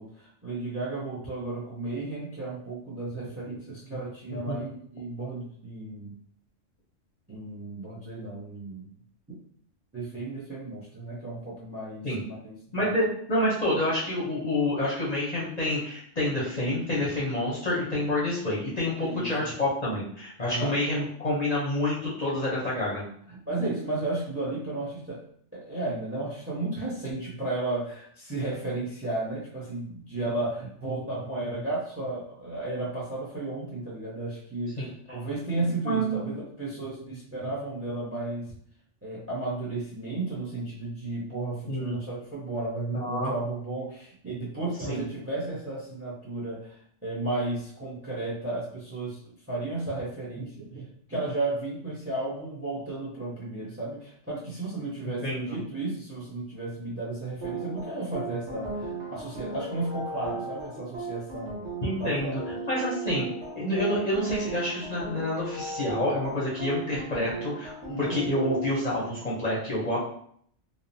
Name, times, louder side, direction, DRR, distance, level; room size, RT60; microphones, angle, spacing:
voice 1, 0.0-6.2 7.3-8.9 9.9-12.9 19.0-19.5 20.4-20.8 23.3-25.2 25.5-38.5 39.0-49.2 49.5-61.7 62.0-62.3 67.9-68.2, right 2 dB, 20° right, -5 dB, 0.4 m, -34 dB
voice 2, 12.7-23.0 34.8-34.9 35.6-36.2 41.7-41.9 42.9-43.3 44.9-45.0 55.0-55.6 61.8-62.4 62.7-63.3 63.5-67.7 68.0-70.0, left 1 dB, 45° left, -7 dB, 0.6 m, -28 dB
sound 1, 57.4-68.7, right 3 dB, 65° right, 1.0 m, -36 dB
2.9 x 2.0 x 2.5 m, 0.63 s
omnidirectional pair, 1.3 m